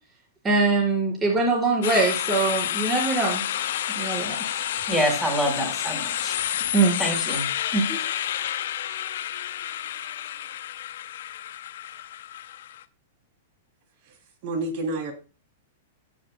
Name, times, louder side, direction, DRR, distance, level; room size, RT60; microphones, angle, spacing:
voice 1, 0.4-3.4 3.9-4.7 6.7-7.0 7.7-8.0, right 3 dB, 20° right, -2 dB, 5.0 m, -23 dB
sound 1, 1.8-12.8, left 11 dB, 70° left, 0.6 m, -30 dB
voice 2, 4.9-6.4 7.0-7.5, equal, 5° right, -1 dB, 4.2 m, -26 dB
voice 3, 14.4-15.1, right 2 dB, 50° right, 4 dB, 2.8 m, -29 dB
16.5 x 6.2 x 2.2 m, 0.32 s
hypercardioid pair, 110°, 0 cm